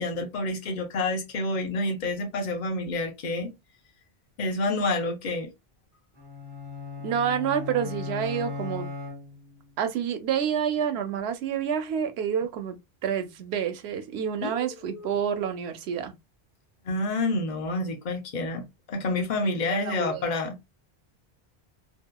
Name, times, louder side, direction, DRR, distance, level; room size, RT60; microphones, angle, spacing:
voice 1, 0.0-3.5 4.4-5.5 14.4-15.1 16.8-20.7, left 2 dB, 50° left, 0.8 m, -29 dB
sound 1, 6.2-9.7, left 4 dB, 30° right, 0.5 m, -37 dB
voice 2, 7.0-8.9 9.8-12.8 13.0-16.1 19.4-20.4, right 8 dB, 80° right, 0.8 m, -28 dB
2.8 x 2.3 x 2.2 m
omnidirectional pair, 1.1 m